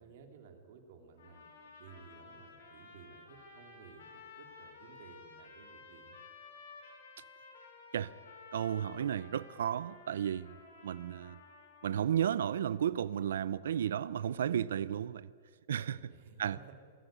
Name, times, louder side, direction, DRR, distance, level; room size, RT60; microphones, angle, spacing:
voice 1, 0.0-6.2 15.9-16.8, right 6 dB, 60° right, 3.1 m, -56 dB
sound 1, 1.2-12.2, left 4 dB, 80° left, 4.9 m, -54 dB
voice 2, 8.5-10.5 10.8-11.4 11.8-15.3 15.7-16.1 16.4-16.6, right 9 dB, 85° right, 0.5 m, -33 dB
21.5 x 14.0 x 9.2 m
hypercardioid pair, 150°, 0 cm